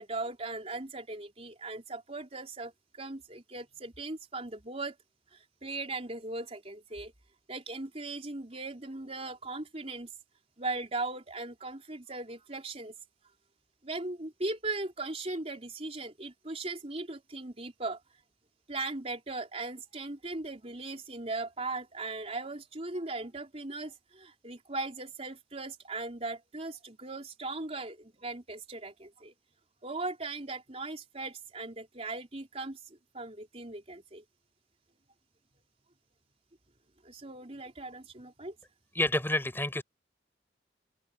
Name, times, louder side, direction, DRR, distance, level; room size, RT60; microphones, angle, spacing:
voice 1, 0.0-5.0 5.3-7.1 7.5-10.1 10.6-12.9 13.8-18.0 18.7-29.3 29.8-34.2 37.0-38.5, right 2 dB, 35° right, 4.1 m, -38 dB
voice 2, 38.9-39.8, left 1 dB, 15° left, 6.3 m, -28 dB
open air
head